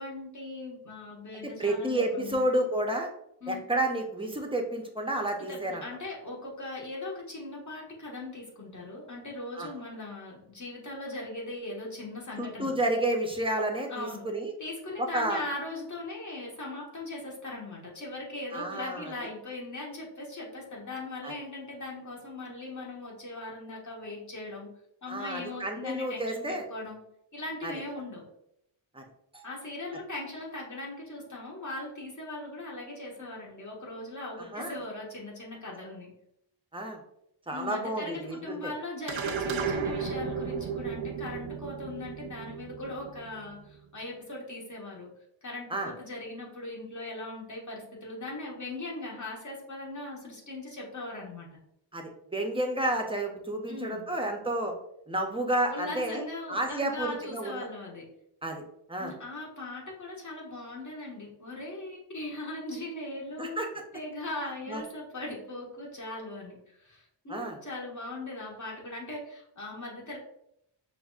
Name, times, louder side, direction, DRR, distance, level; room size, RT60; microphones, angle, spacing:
voice 1, 0.0-2.4 3.4-3.6 5.4-12.7 13.9-14.2 14.6-24.7 25.0-27.0 27.3-28.2 29.4-36.1 37.5-45.1 45.4-51.5 53.7-54.1 55.7-58.1 59.0-63.6 63.9-70.2, left 2 dB, 40° left, -3 dB, 1.4 m, -39 dB
voice 2, 1.3-3.1 3.5-5.8 9.5-9.7 12.4-14.5 15.0-15.4 18.5-19.1 21.2-21.3 25.1-26.6 27.6-27.7 28.9-29.0 29.3-29.4 34.5-34.8 36.7-37.0 37.5-38.7 45.7-45.9 51.9-54.7 55.1-56.2 56.5-57.7 58.4-58.6 58.9-59.2 63.4-63.7 64.7-64.8 67.3-67.6, right 1 dB, 10° right, 2 dB, 0.6 m, -30 dB
sound 1, 39.1-43.7, right 6 dB, 80° right, 0.6 m, -34 dB
5.8 x 2.6 x 2.4 m, 0.76 s
wide cardioid pair, 90°, 46 cm